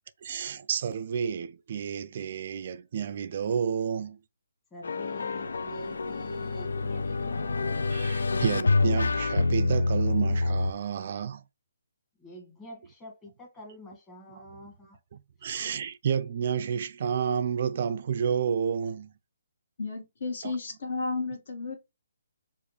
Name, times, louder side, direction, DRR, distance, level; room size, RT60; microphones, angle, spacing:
voice 1, 0.2-4.2 7.9-11.4 14.3-14.4 15.1-19.1 20.4-20.5, right 7 dB, 45° right, 0.4 m, -30 dB
voice 2, 4.7-8.0 12.2-15.0, left 1 dB, 15° left, 1.5 m, -45 dB
sound 1, 4.8-10.7, left 3 dB, 80° left, 0.4 m, -27 dB
voice 3, 19.8-21.8, left 3 dB, 60° left, 1.6 m, -33 dB
4.8 x 2.5 x 3.2 m
hypercardioid pair, 155°, 0 cm